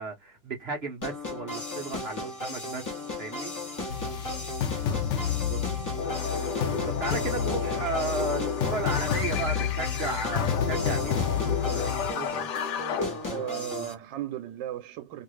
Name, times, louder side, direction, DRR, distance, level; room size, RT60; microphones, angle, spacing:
voice 1, 0.0-2.9 3.2-3.5 6.9-12.5, right 3 dB, 55° right, 0.7 m, -34 dB
sound 1, 1.0-13.9, left 2 dB, 20° left, 0.5 m, -36 dB
sound 2, 3.9-12.1, left 9 dB, 85° left, 0.6 m, -30 dB
voice 2, 4.0-5.8 13.3-15.2, right 11 dB, 80° right, 1.2 m, -38 dB
sound 3, 6.0-13.7, left 5 dB, 70° left, 1.2 m, -33 dB
3.0 x 2.5 x 3.1 m
omnidirectional pair, 2.0 m